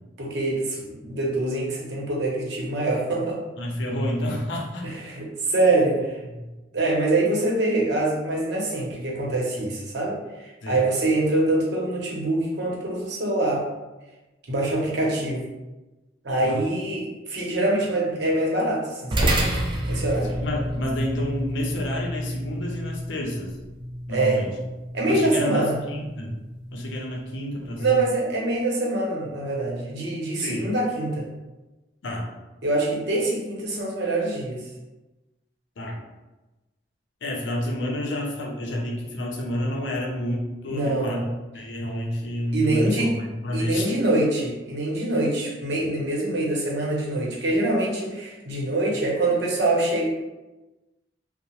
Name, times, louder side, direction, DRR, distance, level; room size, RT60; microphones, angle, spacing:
voice 1, 0.2-3.4 4.8-6.2 6.7-10.2 10.7-13.6 14.5-15.5 16.2-19.3 19.8-20.3 24.1-24.4 24.9-25.8 27.8-31.3 32.6-34.6 40.7-41.3 42.5-43.2 43.5-50.1, right 2 dB, 65° right, -3 dB, 0.8 m, -24 dB
voice 2, 3.6-4.9 6.3-6.5 10.6-10.8 16.4-16.6 20.2-23.5 24.1-24.5 25.0-26.4 26.7-28.0 30.4-30.7 32.0-32.3 35.8-36.0 37.2-41.3 41.5-43.9, left 1 dB, 85° left, 0 dB, 0.6 m, -29 dB
sound 1, 19.1-27.8, right 1 dB, 25° right, 0.4 m, -30 dB
2.8 x 2.0 x 3.0 m, 1.1 s
head